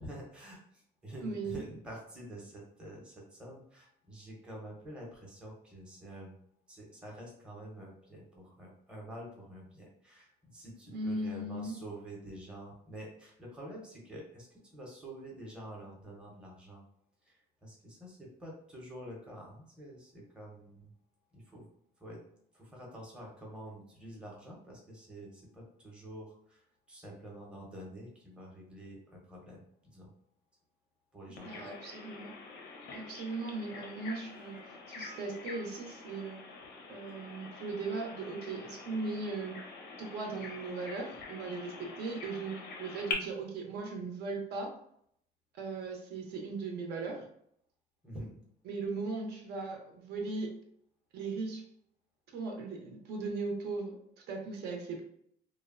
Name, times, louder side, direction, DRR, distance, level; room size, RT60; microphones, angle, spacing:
voice 1, 0.0-6.4 6.7-14.5 14.7-16.8 17.2-20.9 21.3-21.7 22.0-22.2 22.5-26.6 26.9-30.1 31.1-31.7 48.0-48.3, right 1 dB, 5° right, -2 dB, 0.6 m, -48 dB
voice 2, 1.2-1.6 10.9-11.8 31.4-32.3 32.9-36.4 36.9-39.6 40.0-44.7 45.5-47.3 48.7-50.5 51.1-51.6 52.3-55.0, right 3 dB, 70° right, 2 dB, 0.6 m, -38 dB
Bird vocalization bird call bird song, 31.4-43.1, left 4 dB, 80° left, 0.5 m, -45 dB
2.9 x 2.0 x 2.3 m, 0.69 s
cardioid pair, 165°, 17 cm